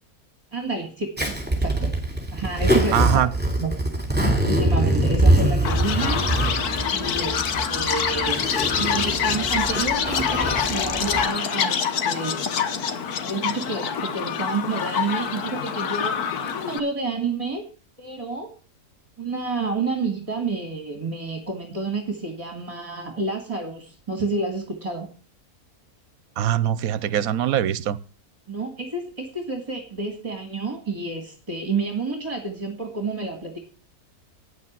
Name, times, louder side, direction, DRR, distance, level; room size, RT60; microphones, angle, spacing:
voice 1, 0.5-1.9 2.3-3.3 3.6-3.7 4.4-6.2 6.9-8.4 8.8-12.4 13.2-17.7 18.0-18.5 19.2-25.1 28.5-33.6, right 3 dB, 25° right, 4 dB, 2.1 m, -29 dB
Zipper (clothing), 1.2-11.2, right 1 dB, 5° right, 3.5 m, -23 dB
voice 2, 2.9-3.3 26.4-28.0, right 11 dB, 70° right, 17 dB, 1.2 m, -22 dB
Chirp tweet, 5.6-16.8, left 7 dB, 90° left, 1.6 m, -26 dB
9.5 x 8.4 x 7.5 m, 0.37 s
omnidirectional pair, 1.6 m